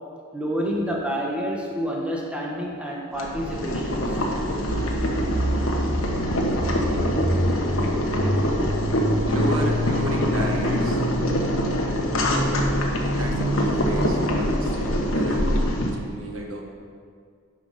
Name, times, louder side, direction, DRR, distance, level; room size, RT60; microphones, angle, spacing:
voice 1, 0.3-4.2, equal, 5° right, -3 dB, 1.2 m, -28 dB
Boiling, 3.1-15.9, equal, 75° left, 1.3 m, -24 dB
sound 1, 4.7-14.4, equal, 40° right, 1.3 m, -28 dB
voice 2, 9.3-11.0 13.0-16.7, right 1 dB, 75° right, 1 dB, 1.3 m, -32 dB
9.7 x 6.0 x 5.4 m, 2.1 s
head